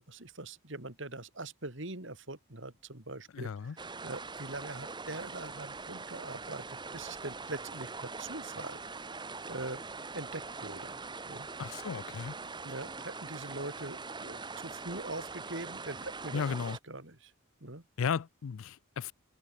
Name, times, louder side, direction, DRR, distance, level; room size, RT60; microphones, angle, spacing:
voice 1, 0.0-8.8 9.5-9.8 10.1-11.0 11.3-11.5 12.4-16.4 16.9-17.3 17.6-17.8, right 2 dB, 60° right, 3.1 m, -42 dB
voice 2, 3.3-3.8 11.6-12.3 16.3-16.8 18.0-19.1, left 6 dB, 80° left, 0.4 m, -34 dB
sound 1, 3.8-16.8, right 4 dB, 20° right, 1.3 m, -43 dB
head